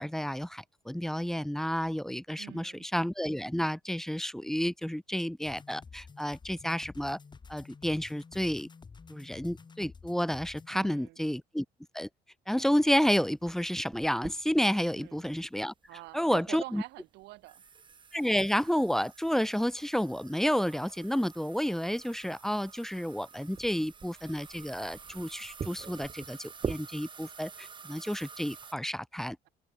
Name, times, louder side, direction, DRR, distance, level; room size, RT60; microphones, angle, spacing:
voice 1, 0.0-7.2 7.5-8.7 9.1-11.7 11.9-12.1 12.5-15.7 16.1-16.8 18.1-29.4, equal, ahead, 0.3 m, -30 dB
voice 2, 2.4-2.9 10.7-11.2 14.9-15.2 15.9-17.6, right 19 dB, 85° right, 1.8 m, -46 dB
sound 1, 5.4-10.7, left 5 dB, 25° left, 2.1 m, -51 dB
sound 2, 13.0-28.7, right 6 dB, 30° right, 1.0 m, -45 dB
cardioid pair, 110°, 17 cm